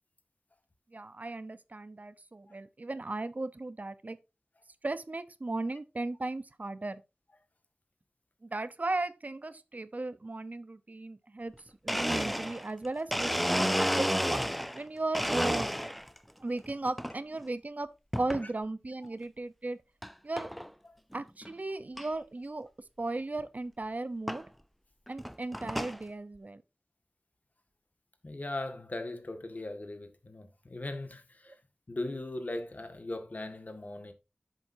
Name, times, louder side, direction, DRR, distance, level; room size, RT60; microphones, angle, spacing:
voice 1, 0.9-4.2 4.8-7.0 8.4-11.5 11.8-15.7 16.4-17.9 18.2-19.8 20.2-20.5 21.1-22.7 23.0-24.5 25.1-26.6, right 2 dB, 60° right, 0.8 m, -36 dB
Domestic sounds home sounds, 11.5-11.6 11.9-14.8 15.1-16.2 16.6-17.1 18.1-18.5 19.0-19.1 20.0-20.1 20.4-20.7 21.1-21.2 21.4-21.5 22.0-22.1 23.4-23.5 24.3-24.4 25.1-26.0, equal, ahead, 0.6 m, -31 dB
voice 2, 28.2-31.6 31.9-34.1, left 2 dB, 60° left, 1.9 m, -39 dB
11.0 x 7.7 x 2.7 m
wide cardioid pair, 45°, 3 cm